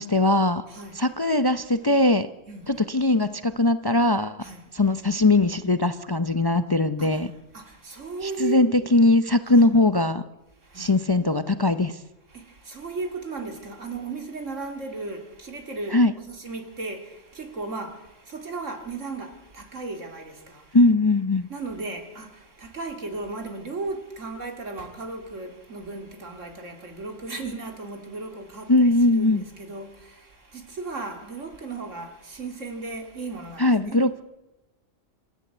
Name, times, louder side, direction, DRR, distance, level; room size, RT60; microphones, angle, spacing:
voice 1, 0.0-0.6 1.0-2.3 2.7-4.4 4.7-7.3 8.2-10.2 10.8-11.9 15.9-16.1 20.7-21.5 28.7-29.4 33.6-34.2, left 2 dB, 25° left, 0.6 m, -20 dB
voice 2, 0.7-1.1 2.5-2.8 4.4-4.6 7.0-8.7 9.5-9.7 10.6-11.0 12.3-20.8 21.5-34.0, right 3 dB, 80° right, 3.1 m, -36 dB
27.0 x 13.5 x 8.0 m
omnidirectional pair, 1.3 m